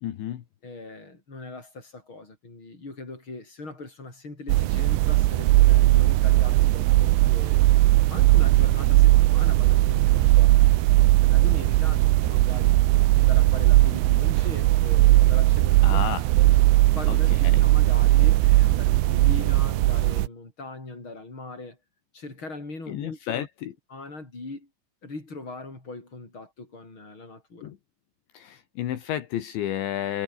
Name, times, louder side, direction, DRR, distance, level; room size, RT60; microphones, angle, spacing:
voice 1, 0.0-0.4 15.8-16.3 17.1-17.2 17.4-17.6 22.9-23.7 27.6-27.8 28.3-30.2, left 11 dB, 70° left, 4.1 m, -31 dB
voice 2, 0.6-7.7 8.1-10.6 11.2-12.7 13.2-16.0 16.4-16.5 16.9-21.8 22.1-23.4 23.9-24.7 25.0-27.7, left 3 dB, 25° left, 8.6 m, -40 dB
sound 1, 4.5-20.3, right 17 dB, 80° right, 3.3 m, -19 dB
omnidirectional pair, 5.6 m